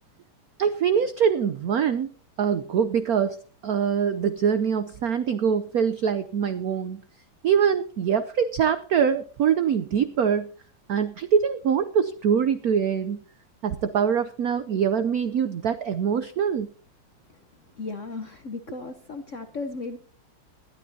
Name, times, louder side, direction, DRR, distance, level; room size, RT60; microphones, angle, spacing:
voice 1, 0.6-2.1 2.4-3.4 3.6-7.0 7.4-10.5 10.9-13.2 13.6-16.7, right 7 dB, 80° right, 12 dB, 0.8 m, -24 dB
voice 2, 17.8-20.0, left 3 dB, 55° left, 8 dB, 0.8 m, -35 dB
20.5 x 12.5 x 2.8 m, 0.42 s
omnidirectional pair, 2.4 m